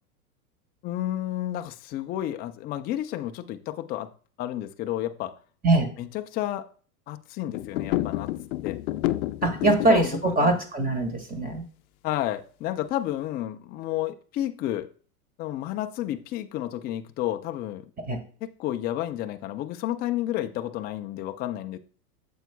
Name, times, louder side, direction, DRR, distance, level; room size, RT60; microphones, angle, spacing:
voice 1, 0.8-4.1 4.4-5.4 6.0-6.7 7.1-8.3 8.6-8.8 9.6-10.4 12.0-14.9 15.4-17.9 18.4-21.8, left 13 dB, 20° left, 0.4 m, -31 dB
sound 1, 7.5-10.1, left 16 dB, 65° left, 0.6 m, -29 dB
voice 2, 9.4-11.6 18.0-18.2, right 2 dB, 20° right, 1.8 m, -22 dB
8.9 x 7.1 x 2.2 m
hypercardioid pair, 110°, 45 cm